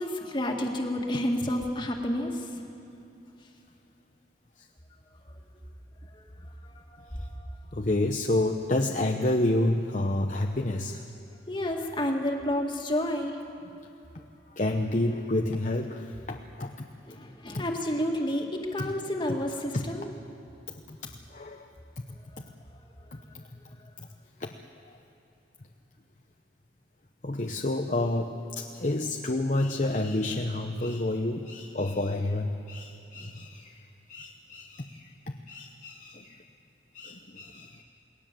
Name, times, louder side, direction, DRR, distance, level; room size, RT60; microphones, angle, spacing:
voice 1, 0.0-2.5 6.1-6.2 6.6-7.6 11.5-13.6 17.0-20.1, left 1 dB, 25° left, 2 dB, 2.2 m, -30 dB
voice 2, 7.7-11.0 14.5-16.9 17.5-17.6 18.8-18.9 19.7-19.9 20.7-21.7 23.1-23.4 24.0-24.1 24.4-24.6 27.2-36.4 36.9-37.8, left 1 dB, 45° left, 3 dB, 0.9 m, -29 dB
28.5 x 19.5 x 7.7 m, 2.8 s
head